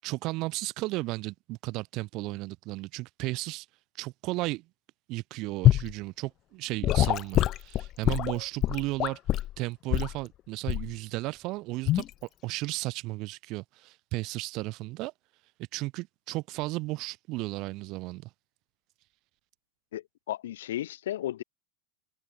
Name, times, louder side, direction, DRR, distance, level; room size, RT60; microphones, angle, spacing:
voice 1, 0.0-3.7 4.0-4.7 5.1-12.1 12.4-15.1 15.7-18.3, right 21 dB, 40° right, 5.8 m, -34 dB
Gurgling / Sink (filling or washing) / Liquid, 5.6-5.9 6.8-9.5 9.9-10.2 10.7-10.9 11.9-12.1, left 14 dB, 35° left, 1.0 m, -24 dB
voice 2, 19.9-21.4, left 13 dB, 80° left, 2.9 m, -34 dB
supercardioid pair, 145°, 0 cm